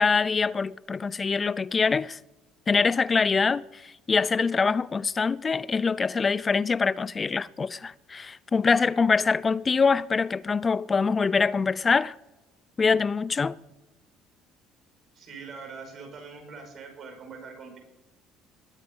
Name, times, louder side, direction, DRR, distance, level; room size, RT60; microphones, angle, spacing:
voice 1, 0.0-2.2 2.7-12.2 12.8-13.6, left 5 dB, 25° left, 0.4 m, -24 dB
voice 2, 15.1-17.8, right 5 dB, 45° right, 5.6 m, -43 dB
20.5 x 8.8 x 5.4 m
cardioid pair, 105°, 0 cm